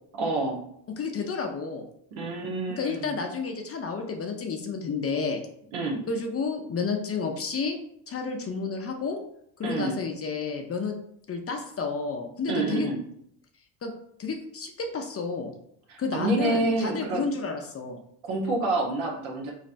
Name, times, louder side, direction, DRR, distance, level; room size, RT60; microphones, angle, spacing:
voice 1, 0.1-0.6 2.1-3.1 5.7-6.0 9.6-10.0 12.4-13.0 15.9-17.3 18.2-19.5, right 2 dB, 75° right, -1 dB, 1.2 m, -28 dB
voice 2, 1.0-1.8 2.8-5.4 6.1-7.8 8.1-9.2 9.6-11.0 11.3-12.9 13.8-13.9 14.2-15.5 16.0-18.0, left 4 dB, 30° left, 3 dB, 0.5 m, -31 dB
4.1 x 3.1 x 2.5 m, 0.71 s
supercardioid pair, 90°, 48 cm